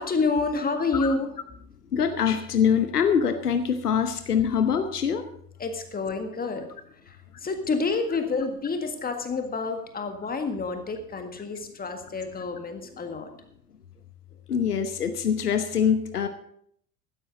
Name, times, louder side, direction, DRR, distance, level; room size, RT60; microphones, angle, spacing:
voice 1, 0.0-1.3 5.6-13.3, left 4 dB, 20° left, 6 dB, 1.7 m, -29 dB
voice 2, 1.9-5.2 14.5-16.3, left 7 dB, 80° left, 9 dB, 1.0 m, -24 dB
15.5 x 12.5 x 3.9 m, 0.68 s
figure-of-eight pair, 75°, 46 cm